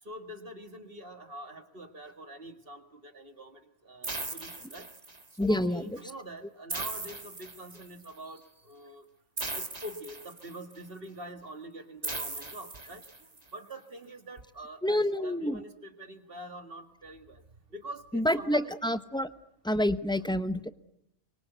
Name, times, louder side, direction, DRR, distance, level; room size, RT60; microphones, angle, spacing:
voice 1, 0.0-4.9 5.3-9.1 9.5-18.7 20.1-20.2, right 1 dB, 50° right, 7 dB, 2.2 m, -45 dB
sound 1, 4.0-5.4 6.7-8.1 9.4-10.7 12.0-13.4, right 2 dB, 35° right, 2.0 m, -38 dB
voice 2, 5.4-5.8 14.8-15.6 18.1-19.3 19.6-20.7, left 1 dB, 5° left, 11 dB, 0.8 m, -27 dB
25.5 x 23.0 x 8.1 m, 0.78 s
omnidirectional pair, 1.2 m